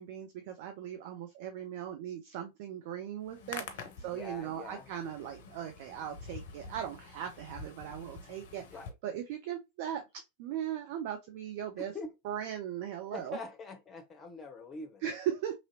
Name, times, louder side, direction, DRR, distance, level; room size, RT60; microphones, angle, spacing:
voice 1, 0.0-8.6 9.0-11.9 12.2-13.4 15.0-15.5, right 10 dB, 50° right, 0.5 m, -38 dB
Hands, 3.2-8.9, left 4 dB, 55° left, 0.6 m, -47 dB
voice 2, 4.0-4.9 8.7-8.9 11.8-12.1 13.1-15.0, left 3 dB, 20° left, 0.8 m, -44 dB
3.0 x 2.7 x 2.6 m
figure-of-eight pair, 90°, 0 cm